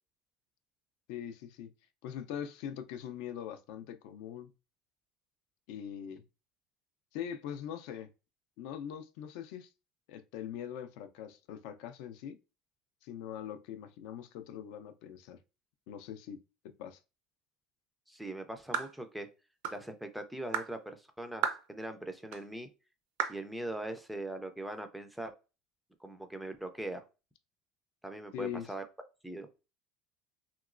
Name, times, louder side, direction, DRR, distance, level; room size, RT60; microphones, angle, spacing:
voice 1, 1.1-1.7 2.0-4.5 5.7-6.2 7.1-8.1 8.6-9.7 10.1-12.4 13.0-15.4 15.9-16.4 16.8-17.0 28.3-28.7, left 9 dB, 70° left, 0.4 m, -42 dB
voice 2, 18.1-19.3 19.7-22.7 23.3-25.3 26.0-27.1 28.0-28.9 29.2-29.5, right 1 dB, ahead, 0.3 m, -41 dB
sound 1, 18.7-19.0 19.6-19.8 20.5-20.7 21.4-21.7 22.3-22.4 23.2-23.4, right 8 dB, 80° right, 0.5 m, -33 dB
3.0 x 2.9 x 2.4 m
cardioid pair, 165°, 0 cm